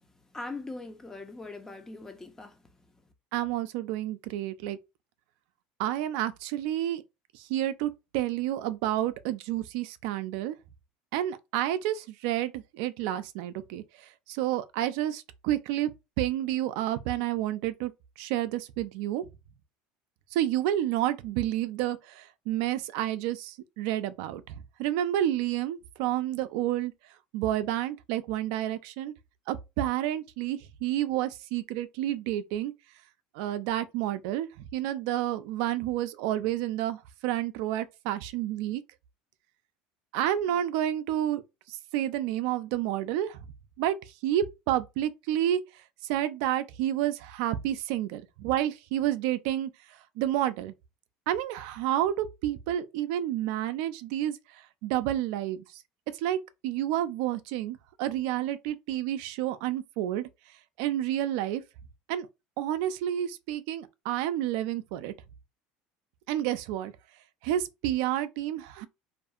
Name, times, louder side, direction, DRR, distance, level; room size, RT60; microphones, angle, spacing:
voice 1, 0.3-2.6, left 3 dB, 15° left, 0.5 m, -41 dB
voice 2, 3.3-4.8 5.8-7.0 7.3-10.6 11.1-15.9 16.2-17.9 18.2-19.3 20.3-26.9 27.3-29.1 29.5-32.7 33.3-38.8 40.1-41.4 41.7-43.4 43.8-44.0 44.2-45.6 46.0-50.7 51.3-55.8 56.1-56.4 56.6-60.3 60.8-61.6 62.1-62.3 62.6-65.1 66.3-66.9 67.4-68.9, right 12 dB, 75° right, 0.3 m, -30 dB
2.7 x 2.4 x 2.3 m
supercardioid pair, 110°, 3 cm